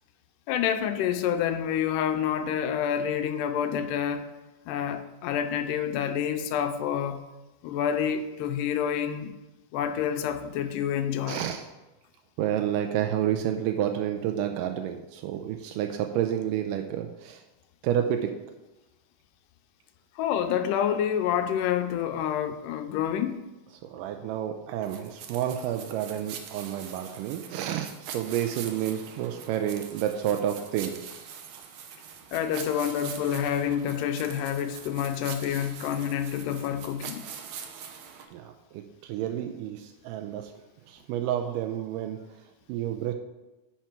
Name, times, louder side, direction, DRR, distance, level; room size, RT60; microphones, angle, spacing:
voice 1, 0.5-4.3 4.7-7.2 7.6-9.3 9.7-11.4 20.2-23.4 32.3-37.2, left 9 dB, 80° left, 9 dB, 2.2 m, -28 dB
voice 2, 11.2-11.7 12.4-17.4 17.8-18.3 23.9-31.0 38.3-40.5 40.9-42.2 42.7-43.1, right 10 dB, 85° right, 5 dB, 2.2 m, -30 dB
sound 1, 24.8-38.3, right 7 dB, 70° right, 1.8 m, -43 dB
10.0 x 5.8 x 4.5 m, 1.0 s
omnidirectional pair, 3.7 m